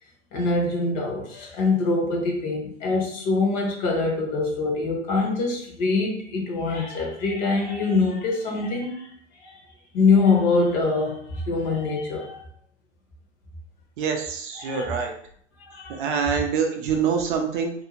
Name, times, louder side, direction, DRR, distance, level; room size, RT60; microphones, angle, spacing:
voice 1, 0.3-9.1 9.4-9.6 9.9-12.4 14.6-14.9 15.7-16.0, left 3 dB, 40° left, 1 dB, 0.9 m, -24 dB
voice 2, 14.0-15.1 15.9-17.7, right 6 dB, 45° right, 3 dB, 0.5 m, -25 dB
2.6 x 2.3 x 2.9 m, 0.63 s
hypercardioid pair, 115°, 36 cm